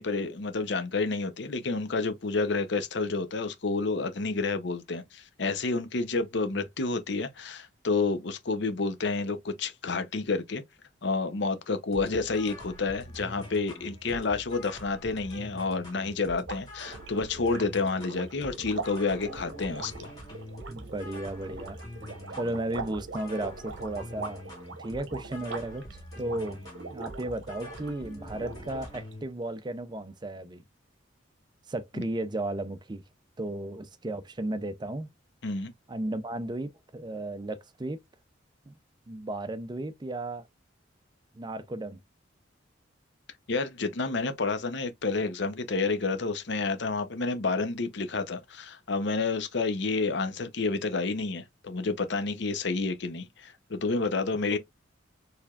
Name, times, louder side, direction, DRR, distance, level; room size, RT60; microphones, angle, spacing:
voice 1, 0.0-10.6 11.0-20.1 35.4-35.7 43.5-54.6, left 3 dB, 60° left, 0.7 m, -29 dB
sound 1, 11.9-29.2, equal, 20° left, 2.2 m, -45 dB
sound 2, 16.3-27.9 28.3-29.1, right 4 dB, 65° right, 0.9 m, -42 dB
voice 2, 20.7-21.8 22.3-24.4 24.8-26.6 26.9-30.6 31.7-33.0 33.4-35.1 35.9-38.0 38.7-38.8 39.1-40.5 41.3-42.0 54.5-54.6, right 1 dB, 20° right, 0.5 m, -34 dB
4.7 x 3.4 x 2.3 m
head